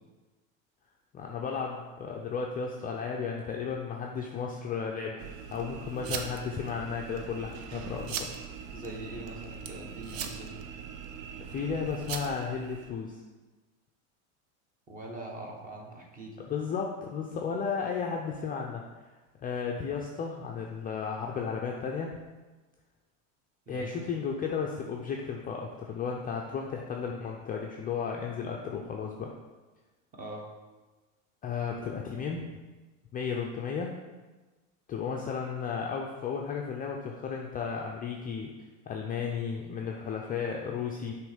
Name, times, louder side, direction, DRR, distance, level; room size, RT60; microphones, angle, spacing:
voice 1, 1.1-8.4 11.4-13.2 16.5-18.8 19.4-22.2 23.7-29.3 31.4-32.5 33.1-33.9 34.9-38.5 38.9-41.1, left 6 dB, 20° left, 0 dB, 0.4 m, -34 dB
sound 1, 5.2-12.9, right 7 dB, 75° right, 0.7 m, -40 dB
voice 2, 8.7-10.6 14.9-16.4 23.7-23.9 30.1-30.5, right 1 dB, 20° right, 0 dB, 1.2 m, -42 dB
6.1 x 3.1 x 5.0 m, 1.2 s
supercardioid pair, 110°, 39 cm